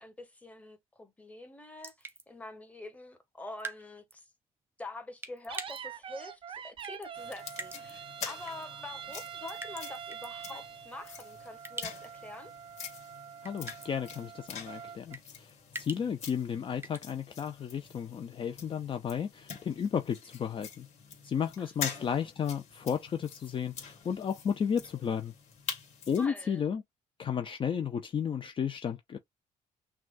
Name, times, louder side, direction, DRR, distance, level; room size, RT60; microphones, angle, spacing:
voice 1, 0.0-4.2 4.8-12.5 21.6-22.2 26.2-26.6, left 2 dB, 10° left, 1.2 m, -46 dB
sound 1, 1.8-2.2 3.6-3.8 4.1-4.2 5.2-5.8 6.8-7.1 7.5-7.9 8.5-8.6 9.6-10.3 11.6-12.1 12.3-12.4 13.4-13.9 15.1-16.3 16.8-17.0, right 3 dB, 15° right, 0.8 m, -42 dB
sound 2, 5.5-15.1, right 8 dB, 40° right, 0.5 m, -45 dB
sound 3, 7.1-26.3, left 6 dB, 55° left, 2.0 m, -45 dB
voice 2, 13.4-20.9 21.2-25.3 26.1-26.8 27.2-29.2, left 7 dB, 40° left, 0.5 m, -33 dB
5.9 x 2.3 x 2.5 m
cardioid pair, 110°, 14 cm